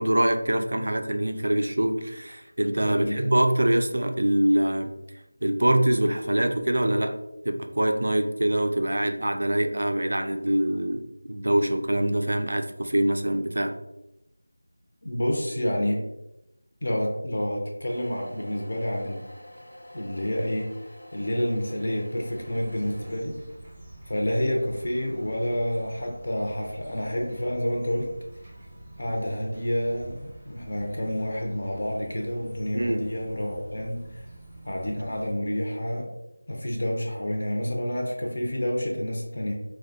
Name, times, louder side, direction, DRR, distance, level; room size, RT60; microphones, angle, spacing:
voice 1, 0.0-4.9 5.4-7.2 7.4-11.0 11.3-13.7 32.7-33.0, right 1 dB, 80° right, 6 dB, 0.3 m, -24 dB
voice 2, 2.8-3.3 15.0-16.0 16.8-19.2 19.9-20.7 21.1-23.3 24.1-28.1 29.0-34.3 34.7-36.1 36.5-39.5, equal, 50° left, 0 dB, 0.5 m, -29 dB
sound 1, 17.9-23.1, equal, 80° left, 0.8 m, -47 dB
sound 2, 22.3-35.3, right 1 dB, 10° right, 0.6 m, -46 dB
2.3 x 2.2 x 2.6 m, 0.89 s
figure-of-eight pair, 175°, 0 cm